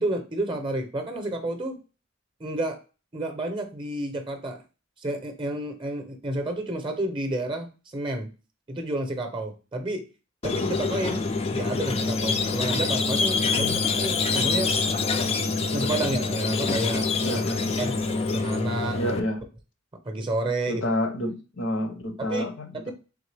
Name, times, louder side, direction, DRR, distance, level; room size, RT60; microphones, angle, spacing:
voice 1, 0.0-1.8 2.4-2.8 3.1-4.6 5.0-8.3 8.7-10.0 10.4-11.2 11.5-14.7 15.7-17.4 17.8-17.9 18.3-19.0 20.0-20.9 22.2-22.4 22.9-23.0, right 1 dB, 25° right, 5 dB, 0.7 m, -30 dB
Squeak, 10.4-19.2, left 4 dB, 30° left, 0.4 m, -26 dB
voice 2, 13.5-13.8 17.2-17.8 18.9-19.4 20.7-22.9, left 1 dB, 65° left, 6 dB, 0.8 m, -29 dB
3.7 x 3.4 x 3.3 m, 0.33 s
head